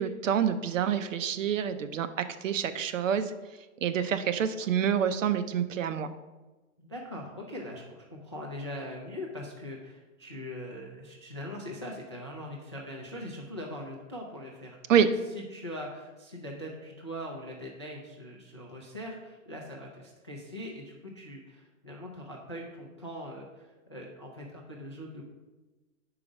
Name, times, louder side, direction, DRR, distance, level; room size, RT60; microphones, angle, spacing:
voice 1, 0.0-2.1 2.4-3.3 3.8-6.1 14.9-15.1, right 8 dB, 70° right, 11 dB, 0.7 m, -27 dB
voice 2, 6.8-25.2, left 1 dB, 25° left, -2 dB, 0.3 m, -41 dB
4.9 x 4.8 x 6.3 m, 1.2 s
hypercardioid pair, 170°, 41 cm